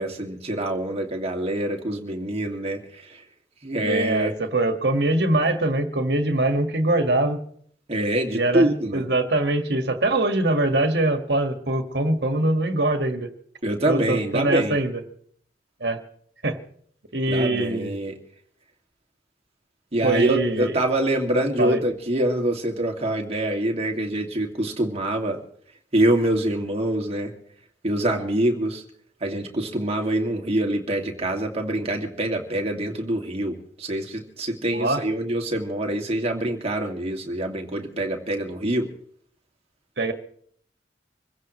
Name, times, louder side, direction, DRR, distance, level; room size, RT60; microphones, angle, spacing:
voice 1, 0.0-3.2 3.6-4.3 7.9-9.0 13.6-14.8 17.3-18.1 19.9-25.4 25.9-27.4 27.8-28.8 29.2-38.9, right 1 dB, 35° right, 2 dB, 2.3 m, -25 dB
voice 2, 3.8-7.4 8.3-8.7 8.9-13.3 13.9-15.0 15.8-16.0 16.4-16.6 17.1-18.0 20.0-20.8 21.6-21.8 34.7-35.0 40.0-40.1, right 2 dB, 65° right, 6 dB, 1.9 m, -23 dB
26.0 x 16.0 x 3.2 m, 0.62 s
head